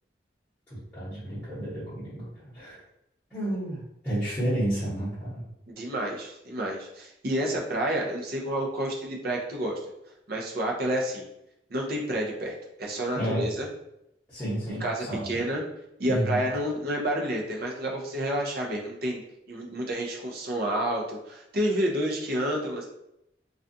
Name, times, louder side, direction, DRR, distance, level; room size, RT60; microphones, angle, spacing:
voice 1, 0.7-2.8 3.3-5.4 13.2-13.5 14.3-15.3 16.0-16.5, right 1 dB, 10° left, -13 dB, 0.9 m, -31 dB
voice 2, 5.7-9.8 10.3-11.2 11.7-13.7 14.8-15.6 16.0-19.2 19.5-22.8, right 1 dB, 55° right, -1 dB, 0.6 m, -29 dB
2.4 x 2.3 x 2.6 m, 0.81 s
head